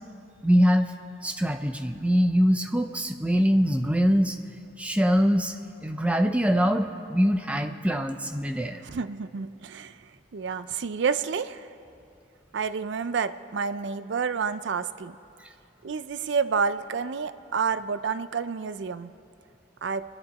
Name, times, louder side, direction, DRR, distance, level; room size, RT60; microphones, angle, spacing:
voice 1, 0.4-0.9 1.2-4.4 4.8-5.5 5.8-8.8 15.4-15.5, equal, 5° right, 5 dB, 0.6 m, -23 dB
voice 2, 8.8-9.9 10.3-11.7 12.5-15.2 15.8-19.1 19.8-20.0, right 5 dB, 65° right, 13 dB, 0.4 m, -29 dB
28.5 x 10.5 x 4.1 m, 2.6 s
head